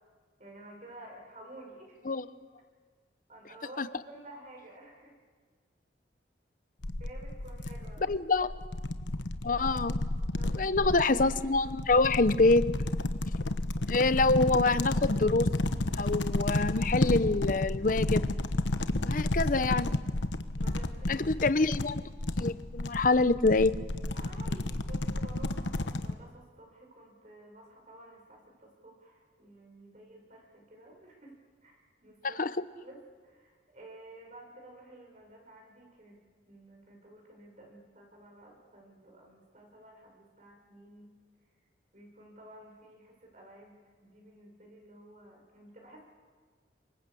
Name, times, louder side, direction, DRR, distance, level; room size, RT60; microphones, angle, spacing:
voice 1, 0.4-2.1 3.3-5.2 7.0-8.1 9.6-9.8 10.4-10.9 19.0-19.2 20.6-21.3 24.1-31.4 31.6-32.4 32.8-36.2 36.5-41.1 41.9-46.0, right 1 dB, 40° right, 1 dB, 5.5 m, -52 dB
sound 1, 6.8-26.1, left 1 dB, 90° left, 1.2 m, -32 dB
voice 2, 8.1-8.5 9.4-9.9 10.5-12.7 13.9-15.5 16.0-18.2 19.0-19.9 21.1-22.0 22.4-23.7 32.2-32.5, left 3 dB, 45° left, 14 dB, 0.8 m, -26 dB
27.0 x 24.5 x 8.4 m, 1.5 s
head